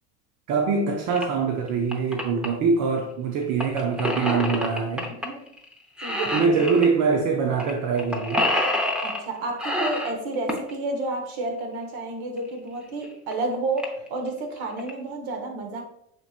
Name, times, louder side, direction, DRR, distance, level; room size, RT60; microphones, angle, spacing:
voice 1, 0.5-5.1 6.2-8.5, right 5 dB, 45° right, 0.7 m, -24 dB
sound 1, 1.2-1.3 1.7-2.5 3.6-5.3 5.6-5.7 6.0-6.9 7.6-7.7 8.0-9.2 9.6-10.7 12.4-12.5 13.0-13.1 13.3-13.4 13.8-14.1 14.6-14.9, left 1 dB, 5° right, 0.6 m, -27 dB
voice 2, 5.1-5.5 6.0-6.7 9.0-15.8, right 2 dB, 65° right, 1.3 m, -31 dB
6.6 x 3.0 x 2.4 m
supercardioid pair, 105°, 40 cm